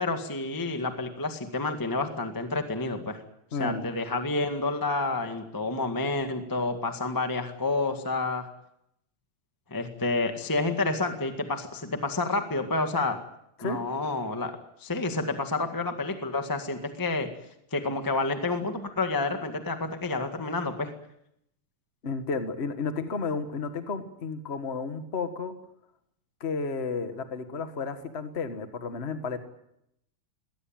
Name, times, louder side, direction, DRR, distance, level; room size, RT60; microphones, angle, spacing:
voice 1, 0.0-3.2 3.6-8.5 9.7-13.2 13.6-14.5 14.8-17.3 17.7-20.9, left 3 dB, 10° left, 6 dB, 0.9 m, -29 dB
voice 2, 3.5-3.9 13.6-13.8 22.0-25.5 26.4-29.4, left 4 dB, 50° left, 8 dB, 0.7 m, -32 dB
21.0 x 18.0 x 9.0 m, 0.78 s
omnidirectional pair, 3.9 m